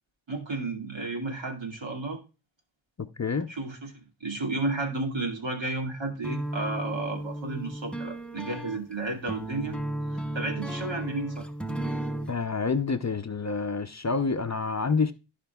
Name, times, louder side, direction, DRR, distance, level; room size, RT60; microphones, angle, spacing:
voice 1, 0.3-2.2 3.5-3.9 4.2-9.8 10.1-11.4, right 2 dB, 65° right, 2.1 m, -32 dB
voice 2, 3.0-3.5 12.3-15.1, left 4 dB, 35° left, 0.6 m, -28 dB
sound 1, 6.2-12.4, right 1 dB, ahead, 0.7 m, -34 dB
15.0 x 5.1 x 2.3 m
wide cardioid pair, 50°, 48 cm